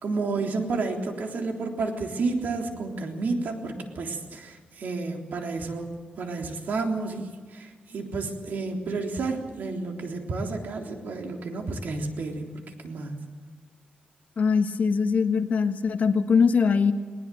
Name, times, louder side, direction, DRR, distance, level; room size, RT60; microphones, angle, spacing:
voice 1, 0.0-5.9 6.2-13.2, right 3 dB, 75° right, 2 dB, 3.6 m, -31 dB
voice 2, 14.4-16.9, left 5 dB, 60° left, 7 dB, 1.6 m, -22 dB
21.0 x 20.0 x 7.8 m, 1.5 s
wide cardioid pair, 125°, 3 cm